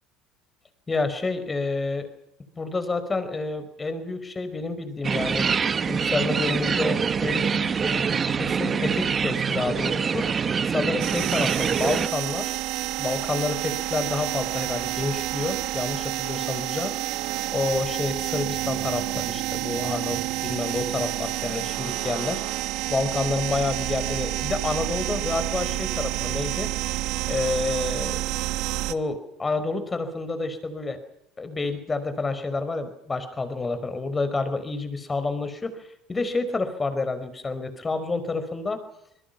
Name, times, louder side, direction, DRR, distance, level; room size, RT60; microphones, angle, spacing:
voice 1, 0.9-2.1 2.6-5.5 5.9-10.4 10.6-12.6 13.0-22.6 22.8-26.7 27.3-28.2 28.9-31.0 31.4-38.8, left 3 dB, 25° left, 11 dB, 5.1 m, -29 dB
sound 1, 5.0-12.1, right 6 dB, 35° right, 1.4 m, -25 dB
sound 2, 11.0-28.9, right 17 dB, 65° right, 1.4 m, -29 dB
26.0 x 22.0 x 6.0 m, 0.78 s
hypercardioid pair, 70°, 0 cm